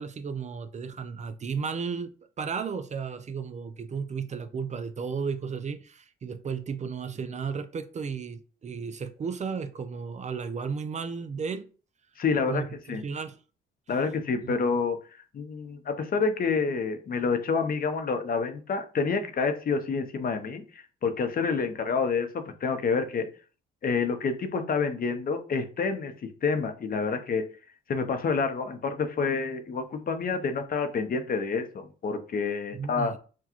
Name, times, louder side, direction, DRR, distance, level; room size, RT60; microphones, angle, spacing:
voice 1, 0.0-2.1 2.4-11.7 12.5-12.7 12.9-13.4 14.4-14.6 32.7-33.2, right 5 dB, 35° right, 0.4 m, -34 dB
voice 2, 12.2-12.6 12.9-13.0 13.9-15.0 15.3-23.3 23.8-26.1 26.4-27.5 27.9-33.1, left 5 dB, 45° left, 0.7 m, -28 dB
5.9 x 2.3 x 3.0 m
cardioid pair, 90°, 20 cm